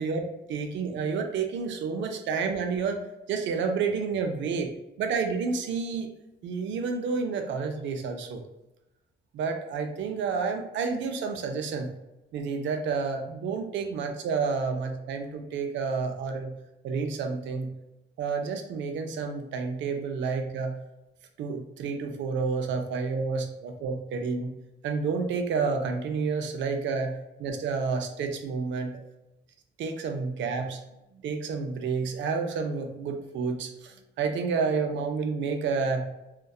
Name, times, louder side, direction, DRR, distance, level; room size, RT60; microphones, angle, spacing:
voice 1, 0.0-3.0 3.3-4.7 5.0-6.1 6.4-8.4 9.3-11.9 12.3-16.6 16.8-17.7 18.2-20.8 21.4-24.6 24.8-29.0 29.8-30.8 31.1-36.1, right 5 dB, 70° right, 5 dB, 0.4 m, -30 dB
2.6 x 2.2 x 2.2 m, 0.95 s
cardioid pair, 90°, 20 cm